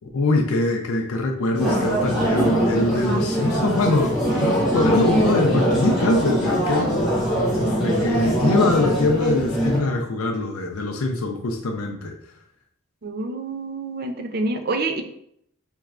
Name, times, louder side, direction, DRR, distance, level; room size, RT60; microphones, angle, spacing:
voice 1, 0.1-7.0 7.5-12.1, left 2 dB, 90° left, 2 dB, 0.5 m, -23 dB
sound 1, 1.6-9.8, equal, ahead, 1.3 m, -22 dB
voice 2, 13.0-15.0, right 2 dB, 45° right, 7 dB, 0.4 m, -27 dB
4.4 x 3.1 x 2.4 m, 0.70 s
head